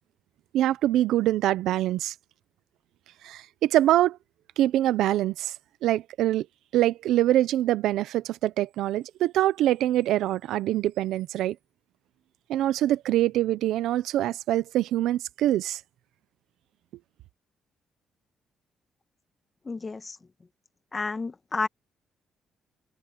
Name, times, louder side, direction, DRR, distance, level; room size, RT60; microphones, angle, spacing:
voice 1, 0.5-2.1 3.2-4.2 4.6-5.5 5.8-6.5 6.7-11.6 12.5-15.8, right 13 dB, 85° right, 0.7 m, -24 dB
voice 2, 19.7-20.2 20.9-21.7, left 4 dB, 30° left, 1.9 m, -31 dB
cardioid pair, 90°, 0 cm